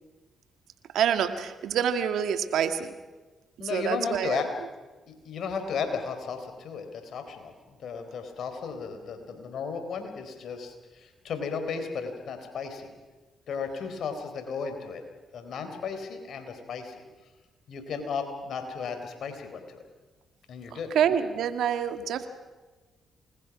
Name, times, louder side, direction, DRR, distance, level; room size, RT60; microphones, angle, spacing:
voice 1, 0.9-2.9 3.6-4.4 20.7-22.3, right 8 dB, 75° right, 9 dB, 1.8 m, -27 dB
voice 2, 3.6-4.5 5.1-12.9 13.5-15.0 15.3-17.0 17.7-19.8 20.5-20.9, left 5 dB, 70° left, 7 dB, 4.0 m, -34 dB
28.0 x 20.5 x 6.2 m, 1.3 s
supercardioid pair, 50°, 0 cm